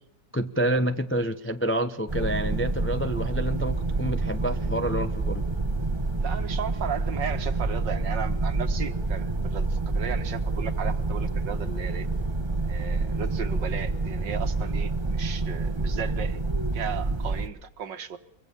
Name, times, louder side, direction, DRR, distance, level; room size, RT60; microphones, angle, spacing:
voice 1, 0.3-5.5, right 1 dB, 20° left, 8 dB, 0.3 m, -28 dB
sound 1, 2.1-17.5, right 3 dB, 15° right, 1.2 m, -28 dB
voice 2, 6.2-12.1 12.7-16.4 16.7-18.2, right 7 dB, 60° right, 9 dB, 2.1 m, -35 dB
24.5 x 23.5 x 7.2 m, 0.75 s
omnidirectional pair, 2.3 m